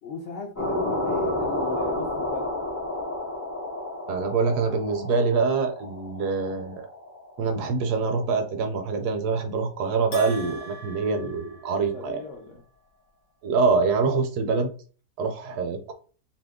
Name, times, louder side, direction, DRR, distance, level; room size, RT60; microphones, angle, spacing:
voice 1, 0.0-2.5 11.9-12.6, left 3 dB, 70° left, -1 dB, 0.7 m, -36 dB
sound 1, 0.6-8.6, left 1 dB, 20° left, 0.4 m, -31 dB
voice 2, 4.1-6.9 7.4-12.2 13.4-14.7 15.2-15.9, right 4 dB, 75° right, 6 dB, 1.1 m, -25 dB
Bell, 10.1-12.3, equal, 50° left, 1.1 m, -42 dB
2.8 x 2.7 x 3.4 m, 0.40 s
omnidirectional pair, 1.9 m